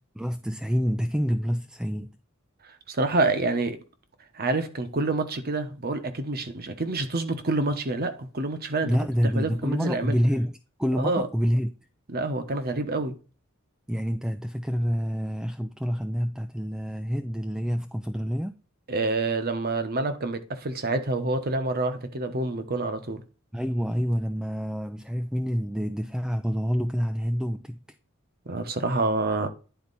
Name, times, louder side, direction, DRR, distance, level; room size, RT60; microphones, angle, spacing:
voice 1, 0.1-2.2 8.8-11.7 13.9-18.5 23.5-27.8, equal, 5° right, 0.3 m, -27 dB
voice 2, 2.9-3.8 4.3-8.9 9.3-10.2 11.0-11.3 12.1-13.2 18.9-23.2 28.5-29.5, right 2 dB, 45° right, 1.0 m, -27 dB
10.5 x 4.3 x 4.0 m
head